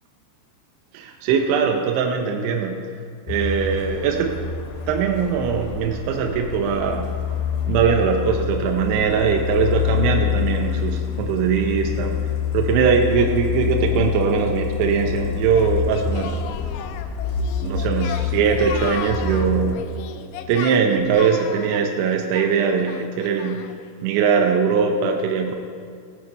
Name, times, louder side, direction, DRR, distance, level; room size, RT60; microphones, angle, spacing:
voice 1, 0.9-2.8 3.3-4.4 4.9-7.1 7.7-12.2 12.5-16.4 17.6-19.8 20.5-23.7 24.0-25.6, right 6 dB, 80° right, 3 dB, 3.0 m, -21 dB
Truck, 3.3-19.8, left 8 dB, 75° left, 3.7 m, -26 dB
Singing, 15.6-23.9, left 9 dB, 90° left, 3.2 m, -36 dB
18.0 x 8.5 x 4.5 m, 2.2 s
omnidirectional pair, 5.6 m